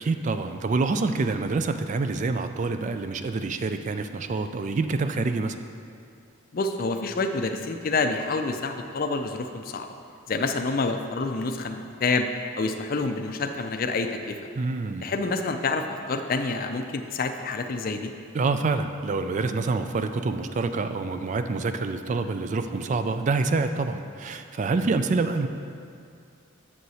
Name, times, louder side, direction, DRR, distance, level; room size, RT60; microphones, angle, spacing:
voice 1, 0.0-5.6 14.6-15.1 18.3-25.5, right 3 dB, 35° right, 9 dB, 0.3 m, -26 dB
voice 2, 6.5-9.9 10.3-12.3 12.5-14.4 15.0-18.1, left 3 dB, 45° left, 6 dB, 0.4 m, -28 dB
7.7 x 6.3 x 4.1 m, 2.4 s
head